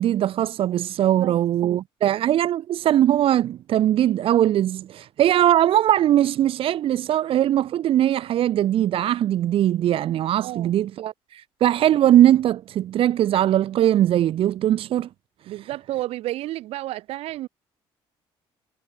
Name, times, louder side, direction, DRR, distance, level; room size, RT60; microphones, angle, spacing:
voice 1, 0.0-15.1, right 12 dB, 60° right, 1.2 m, -20 dB
voice 2, 1.0-1.4 10.4-10.8 15.5-17.5, right 15 dB, 80° right, 2.7 m, -31 dB
cardioid pair, 105°, 10 cm